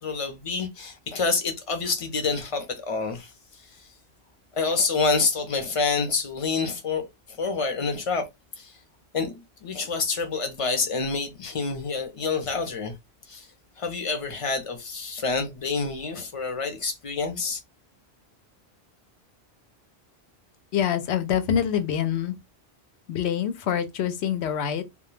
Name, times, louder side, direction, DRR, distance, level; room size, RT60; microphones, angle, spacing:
voice 1, 0.0-3.3 4.5-8.3 8.6-8.7 9.1-13.0 13.3-13.5 13.8-17.6, left 4 dB, 40° left, 0.6 m, -27 dB
voice 2, 20.7-22.4 23.1-24.8, left 9 dB, 90° left, 0.9 m, -25 dB
2.2 x 2.2 x 3.1 m
omnidirectional pair, 1.1 m